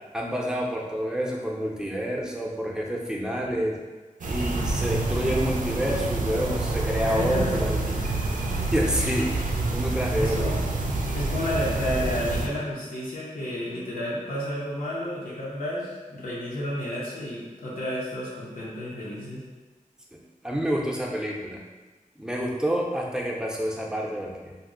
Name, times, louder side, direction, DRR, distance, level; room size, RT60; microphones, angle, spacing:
voice 1, 0.1-3.8 4.3-7.9 8.6-10.5 20.4-21.6 22.2-24.6, equal, 5° right, -2 dB, 0.5 m, -28 dB
sound 1, 4.2-12.5, right 2 dB, 70° right, 0.4 m, -27 dB
voice 2, 7.0-7.6 8.0-8.1 10.2-10.6 11.1-19.4, equal, 85° left, -7 dB, 0.7 m, -31 dB
2.6 x 2.0 x 3.7 m, 1.3 s
wide cardioid pair, 65°, 14 cm